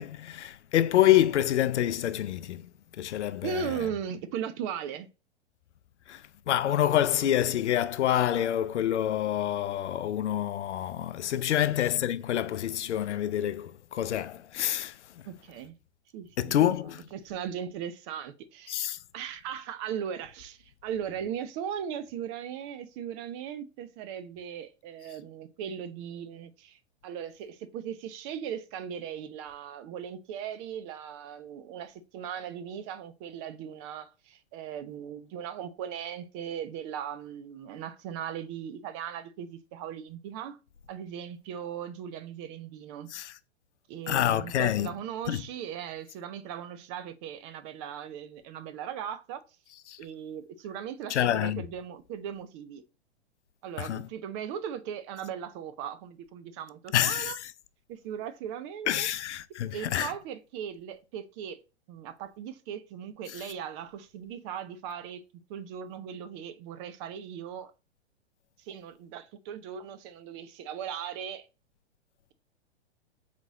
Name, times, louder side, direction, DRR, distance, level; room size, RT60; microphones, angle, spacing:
voice 1, 0.0-2.6 3.0-3.7 6.1-15.0 16.4-17.0 18.7-19.0 43.1-43.3 44.1-44.9 45.3-45.4 49.9-50.0 51.1-51.6 53.8-54.1 56.9-57.3 58.9-60.1, left 12 dB, 80° left, 0.5 m, -27 dB
voice 2, 3.4-5.1 11.5-11.8 15.2-15.7 16.1-16.7 17.1-18.8 19.1-26.8 27.0-40.6 40.9-43.1 43.9-49.4 50.0-52.8 53.6-57.4 57.9-59.1 59.7-61.6 61.9-65.2 65.5-67.7 68.6-71.5, right 8 dB, 25° right, 0.4 m, -38 dB
4.1 x 3.0 x 3.5 m
hypercardioid pair, 115°, 34 cm